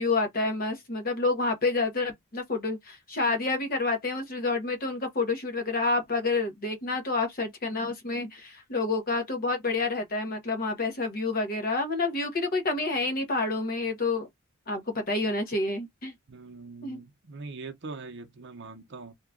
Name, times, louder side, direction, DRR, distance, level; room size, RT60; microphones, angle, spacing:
voice 1, 0.0-14.3 14.7-16.1 16.8-17.0, left 3 dB, 40° left, 0.9 m, -28 dB
voice 2, 16.3-19.1, right 3 dB, 55° right, 0.7 m, -42 dB
2.9 x 2.3 x 3.5 m
head